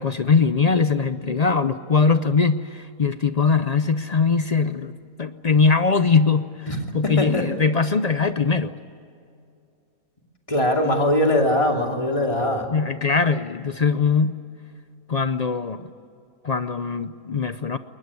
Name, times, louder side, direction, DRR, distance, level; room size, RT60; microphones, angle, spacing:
voice 1, 0.0-4.9 5.2-6.7 6.9-8.7 12.7-14.3 15.1-15.9 16.4-17.8, left 5 dB, 55° left, 11 dB, 0.4 m, -21 dB
voice 2, 7.0-7.5 10.5-12.7, left 1 dB, 20° left, 2 dB, 2.7 m, -21 dB
21.5 x 20.0 x 9.6 m, 2.5 s
omnidirectional pair, 1.6 m